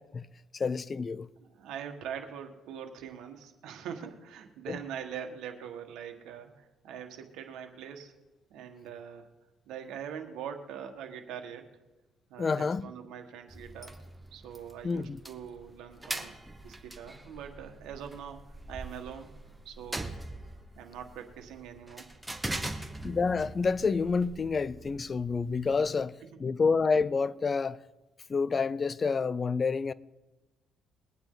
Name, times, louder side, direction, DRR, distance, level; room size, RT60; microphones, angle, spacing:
voice 1, 0.5-1.3 4.7-4.8 12.4-12.8 14.8-15.2 23.0-27.8 28.3-29.9, left 4 dB, 35° left, 0.5 m, -28 dB
voice 2, 1.4-8.1 8.5-9.3 9.7-11.7 12.3-14.0 14.3-19.3 19.6-20.2 20.7-22.1 22.6-22.8 25.3-25.4 26.3-26.4, right 8 dB, 85° right, 1.6 m, -43 dB
sound 1, 13.5-25.9, right 2 dB, 10° right, 1.1 m, -42 dB
22.0 x 8.9 x 3.9 m
cardioid pair, 110°, 0 cm